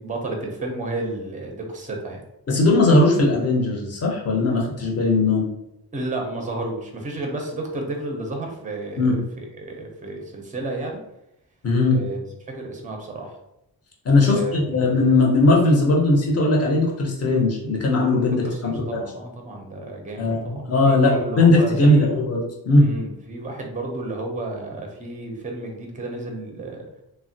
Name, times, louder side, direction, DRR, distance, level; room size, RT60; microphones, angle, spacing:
voice 1, 0.0-2.2 5.9-11.0 11.9-12.2 12.5-13.4 14.3-14.6 18.4-22.1 22.8-26.9, right 2 dB, 20° right, 1 dB, 0.4 m, -32 dB
voice 2, 2.5-5.5 9.0-9.2 11.6-12.0 14.0-18.8 20.2-22.9, left 2 dB, 40° left, -2 dB, 0.7 m, -18 dB
3.3 x 2.1 x 2.6 m, 0.85 s
wide cardioid pair, 180°, 40 cm